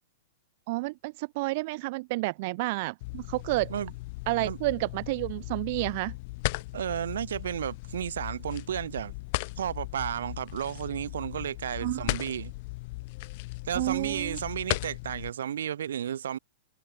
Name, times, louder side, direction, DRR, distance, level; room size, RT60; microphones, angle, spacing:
voice 1, 0.7-3.7 4.3-6.1 11.8-12.1 13.7-14.4, right 23 dB, 35° right, 0.5 m, -30 dB
sound 1, 3.0-15.3, left 23 dB, 35° left, 4.5 m, -37 dB
voice 2, 6.7-9.1 9.6-12.5 13.6-16.4, right 9 dB, 80° right, 2.8 m, -33 dB
supercardioid pair, 175°, 0 cm